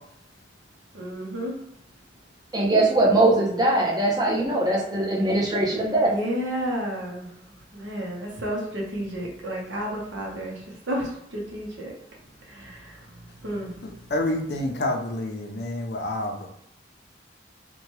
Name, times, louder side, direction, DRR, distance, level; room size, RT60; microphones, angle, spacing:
voice 1, 0.9-1.6 6.1-7.3 7.7-11.9 12.5-13.0 13.4-14.0, equal, 75° right, -2 dB, 0.8 m, -31 dB
voice 2, 2.5-6.1, right 2 dB, 20° right, -2 dB, 0.6 m, -21 dB
voice 3, 13.8-16.5, left 1 dB, 55° left, 3 dB, 0.4 m, -28 dB
2.8 x 2.2 x 3.0 m, 0.74 s
head